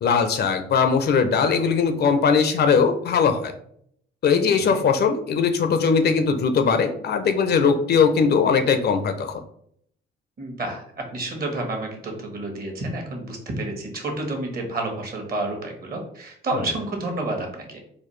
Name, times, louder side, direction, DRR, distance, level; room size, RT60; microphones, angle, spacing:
voice 1, 0.0-3.5 4.2-9.4 16.5-16.7, left 5 dB, 55° left, 7 dB, 0.5 m, -20 dB
voice 2, 4.3-4.6 10.4-10.8 11.1-17.8, right 2 dB, 50° right, 2 dB, 1.2 m, -30 dB
4.1 x 2.4 x 3.1 m, 0.67 s
cardioid pair, 90°, 20 cm